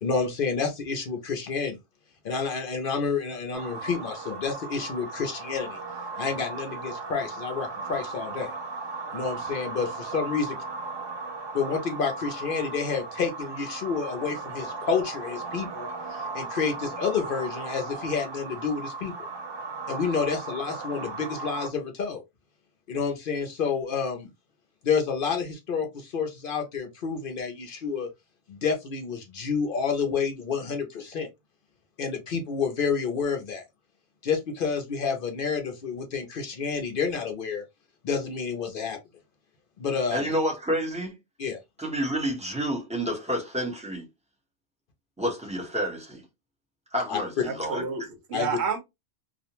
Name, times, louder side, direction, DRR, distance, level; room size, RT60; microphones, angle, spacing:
voice 1, 0.0-1.8 2.2-5.8 6.2-8.5 9.1-10.6 11.5-19.1 19.9-22.2 22.9-24.3 24.8-28.1 28.5-31.3 32.0-33.6 34.2-37.6 38.0-39.0 39.8-40.3 41.4-41.6 47.1-47.2 48.3-48.6, left 5 dB, 60° left, 0.7 m, -29 dB
sound 1, 3.5-21.7, right 3 dB, 40° right, 0.3 m, -37 dB
voice 2, 40.1-41.1 41.8-44.0 45.2-46.2 46.9-47.8, equal, 5° right, 0.8 m, -29 dB
voice 3, 47.4-48.8, right 6 dB, 75° right, 0.9 m, -30 dB
2.4 x 2.1 x 2.8 m
omnidirectional pair, 1.1 m